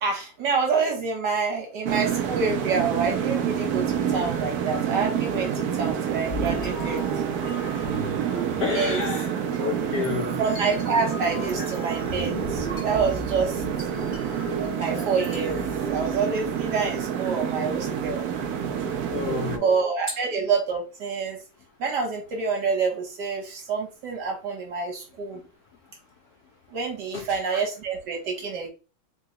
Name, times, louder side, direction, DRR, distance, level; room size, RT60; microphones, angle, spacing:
voice 1, 0.0-7.0 8.7-9.1 10.4-13.6 14.7-15.6 15.9-18.2 19.5-21.4 21.8-25.4 26.7-28.7, right 5 dB, 60° right, 1 dB, 1.6 m, -27 dB
sound 1, 1.9-19.6, right 8 dB, 90° right, 0.8 m, -28 dB
sound 2, 6.3-16.6, left 1 dB, 35° left, 0.8 m, -37 dB
voice 2, 8.6-9.3 9.6-10.4 19.1-19.8 27.1-27.2, left 6 dB, 80° left, 3 dB, 0.8 m, -29 dB
3.8 x 2.2 x 3.8 m, 0.32 s
omnidirectional pair, 2.3 m